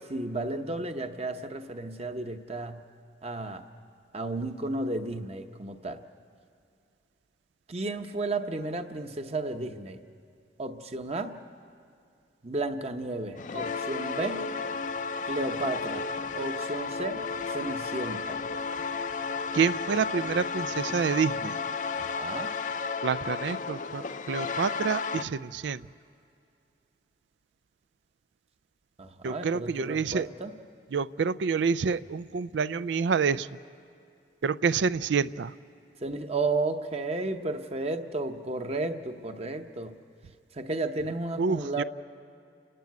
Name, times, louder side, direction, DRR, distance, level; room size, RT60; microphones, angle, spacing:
voice 1, 0.1-2.8 3.2-3.6 4.1-6.0 7.7-10.0 10.6-11.4 12.4-14.5 15.3-16.1 16.3-18.4 21.9-22.5 29.0-30.5 36.0-40.0 40.5-41.8, right 2 dB, 35° right, 7 dB, 0.9 m, -33 dB
sound 1, 13.4-25.2, left 5 dB, 45° left, 0.5 m, -33 dB
voice 2, 19.5-21.6 23.0-25.8 29.2-30.3 30.9-33.5 34.4-35.5 41.4-41.8, right 5 dB, 90° right, 16 dB, 0.4 m, -28 dB
29.5 x 12.0 x 9.4 m, 2.4 s
head